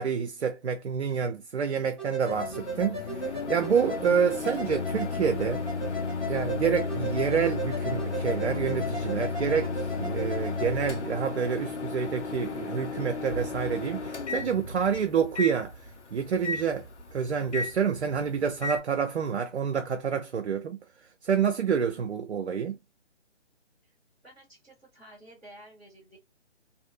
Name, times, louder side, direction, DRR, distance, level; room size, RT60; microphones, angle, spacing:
voice 1, 0.0-5.6 6.3-15.7 16.1-16.9 17.1-20.8 21.2-22.8, right 7 dB, 70° right, 0.5 m, -28 dB
sound 1, 2.0-10.7, right 1 dB, 15° right, 1.3 m, -37 dB
Microwave oven, 2.3-18.8, left 4 dB, 75° left, 0.9 m, -33 dB
voice 2, 24.2-26.2, right 1 dB, 5° left, 0.5 m, -52 dB
2.6 x 2.6 x 2.5 m
figure-of-eight pair, 145°, 35 cm